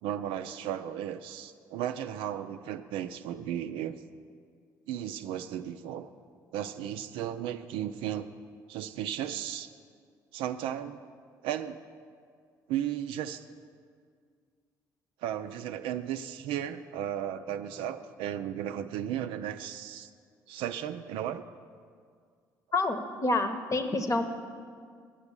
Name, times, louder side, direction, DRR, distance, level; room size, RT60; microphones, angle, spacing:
voice 1, 0.0-4.0 4.9-6.1 6.5-8.3 8.7-9.7 10.3-11.0 11.4-11.8 12.7-13.5 15.2-20.1 20.5-21.4, right 10 dB, 70° right, 9 dB, 0.4 m, -35 dB
voice 2, 22.7-24.2, left 2 dB, 35° left, 8 dB, 1.0 m, -28 dB
8.9 x 6.8 x 7.1 m, 2.1 s
hypercardioid pair, 50°, 10 cm